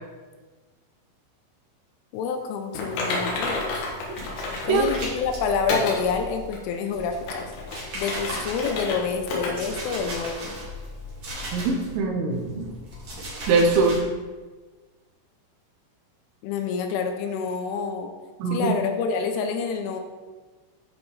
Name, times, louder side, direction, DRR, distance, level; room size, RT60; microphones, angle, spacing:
voice 1, 2.1-3.7 4.7-7.4 8.0-10.6 16.4-18.1 18.5-20.0, left 5 dB, 85° left, 5 dB, 2.9 m, -27 dB
Typing, 2.7-5.1 5.7-6.0 6.5-6.6 7.1-9.0 9.3-9.5 9.9-10.0 10.5-10.6, left 3 dB, 70° left, 3.1 m, -30 dB
sound 1, 3.3-6.5 6.9-12.0 12.3-14.0, equal, 65° right, 1.4 m, -38 dB
voice 2, 11.5-12.7 13.5-14.0 18.4-18.7, right 3 dB, 90° right, 3 dB, 3.4 m, -22 dB
13.0 x 4.4 x 3.1 m, 1.4 s
omnidirectional pair, 5.8 m